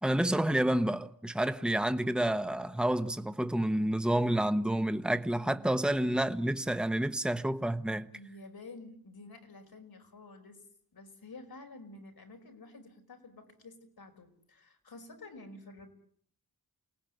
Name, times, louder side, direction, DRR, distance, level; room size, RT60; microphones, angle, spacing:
voice 1, 0.0-8.1, right 1 dB, ahead, 1.3 m, -29 dB
voice 2, 5.4-5.9 8.1-10.7 10.9-15.9, left 2 dB, 90° left, 5.2 m, -50 dB
29.0 x 19.5 x 9.4 m
wide cardioid pair, 70°, 36 cm